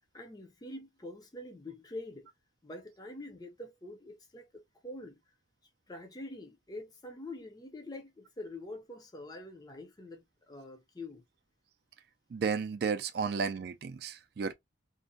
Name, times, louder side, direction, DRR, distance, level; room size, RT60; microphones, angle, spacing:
voice 1, 0.1-2.3 2.6-5.2 5.9-11.2, left 2 dB, 20° left, 0.4 m, -45 dB
voice 2, 12.3-14.5, right 5 dB, 55° right, 0.3 m, -33 dB
2.5 x 2.1 x 2.5 m
head